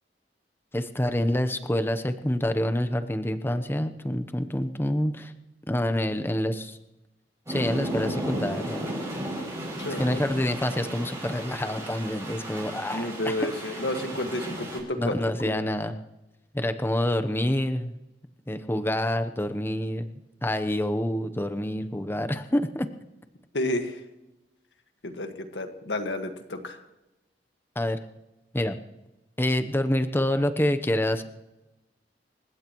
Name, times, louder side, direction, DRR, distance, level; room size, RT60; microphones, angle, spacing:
voice 1, 0.7-5.3 5.7-6.8 7.5-8.9 10.0-13.3 15.0-16.0 16.5-18.0 18.5-22.9 27.8-28.0 28.5-28.8 29.4-31.2, left 1 dB, 15° left, 8 dB, 0.9 m, -27 dB
sound 1, 7.5-14.8, right 1 dB, 15° right, 7.0 m, -34 dB
voice 2, 9.8-10.2 12.9-15.2 15.4-15.6 23.5-24.0 25.0-26.8, left 1 dB, 85° left, 6 dB, 1.7 m, -31 dB
28.5 x 16.0 x 3.1 m, 0.99 s
head